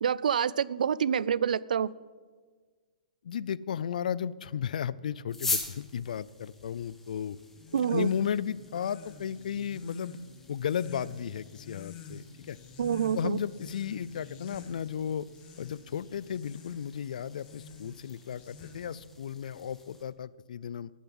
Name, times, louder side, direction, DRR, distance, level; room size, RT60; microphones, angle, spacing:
voice 1, 0.0-1.9 7.7-8.1 12.8-13.4, right 8 dB, 75° right, 21 dB, 0.4 m, -27 dB
voice 2, 3.2-7.4 7.9-10.2 10.5-12.6 13.1-15.2 15.6-20.9, left 8 dB, 70° left, 20 dB, 0.5 m, -34 dB
sound 1, 5.3-20.0, left 3 dB, 5° left, 1.4 m, -43 dB
sound 2, 7.6-19.1, left 4 dB, 30° left, 1.5 m, -49 dB
11.0 x 9.4 x 7.8 m, 1.5 s
hypercardioid pair, 150°, 4 cm